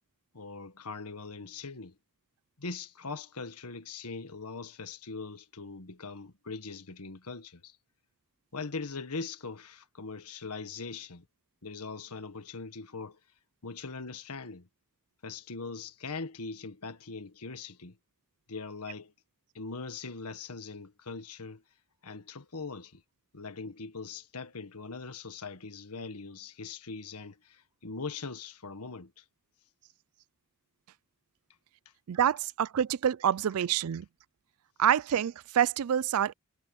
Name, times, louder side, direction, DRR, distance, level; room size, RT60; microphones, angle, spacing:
voice 1, 0.3-1.9 2.6-7.7 8.5-11.2 11.6-13.2 13.6-14.7 15.2-17.9 18.5-19.1 19.5-21.6 22.0-23.0 23.3-29.2, left 4 dB, 90° left, 1.6 m, -41 dB
voice 2, 32.1-34.1 34.8-36.3, right 9 dB, 70° right, 0.4 m, -27 dB
head